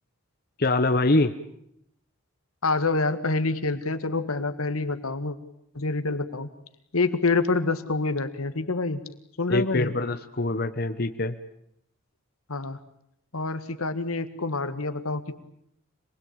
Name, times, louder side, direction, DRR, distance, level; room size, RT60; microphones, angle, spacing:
voice 1, 0.6-1.3 9.5-11.3, left 2 dB, 45° left, 8 dB, 1.0 m, -24 dB
voice 2, 2.6-5.4 5.7-6.5 6.9-9.0 9.4-9.9 12.5-12.8 13.3-15.4, left 3 dB, 85° left, 11 dB, 1.7 m, -27 dB
26.0 x 20.5 x 8.8 m, 0.74 s
head